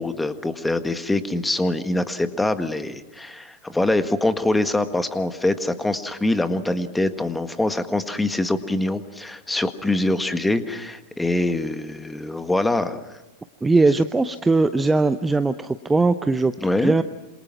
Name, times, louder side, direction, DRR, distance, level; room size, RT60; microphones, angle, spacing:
voice 1, 0.0-13.0 16.6-17.0, left 2 dB, 5° left, 10 dB, 1.7 m, -24 dB
voice 2, 13.6-16.5 16.8-17.0, right 3 dB, 10° right, 12 dB, 0.8 m, -20 dB
27.5 x 27.0 x 6.0 m, 1.1 s
figure-of-eight pair, 90°, 0 cm